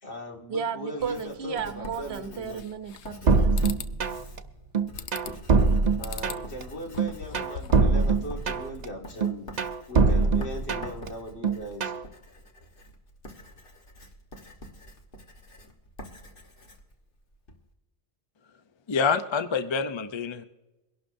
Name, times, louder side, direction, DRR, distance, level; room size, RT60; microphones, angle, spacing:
voice 1, 0.0-2.7 6.0-9.6 9.9-11.9, equal, 75° left, 2.3 m, -39 dB
Writing, 1.0-17.6, left 1 dB, 55° left, 1.5 m, -46 dB
voice 2, 1.0-3.8, right 7 dB, 70° right, 1.0 m, -34 dB
sound 1, 2.6-3.2 3.6-3.9 5.0-5.5 6.0-6.4 6.8-7.9, left 8 dB, 90° left, 1.0 m, -41 dB
sound 2, 3.3-4.4 4.7-6.6 7.0-8.9 9.2-11.1 11.4-12.0, right 4 dB, 45° right, 0.7 m, -23 dB
voice 3, 18.9-20.4, left 5 dB, 35° left, 0.5 m, -26 dB
23.0 x 11.5 x 2.6 m
omnidirectional pair, 1.1 m